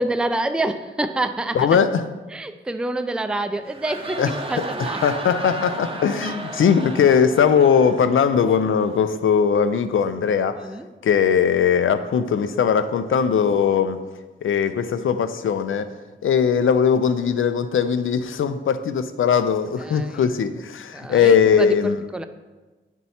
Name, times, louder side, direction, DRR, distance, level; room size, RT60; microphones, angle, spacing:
voice 1, 0.0-1.6 2.3-5.3 10.6-10.9 19.8-20.3 20.9-21.8 22.1-22.2, right 2 dB, 5° right, 9 dB, 0.4 m, -27 dB
voice 2, 1.5-2.0 4.2-4.6 5.0-10.6 11.0-14.0 14.4-15.9 16.2-22.0, left 7 dB, 85° left, 10 dB, 0.5 m, -19 dB
sound 1, 3.5-9.1, right 2 dB, 30° right, 0.7 m, -34 dB
9.5 x 4.5 x 4.2 m, 1.2 s
wide cardioid pair, 105°, 20 cm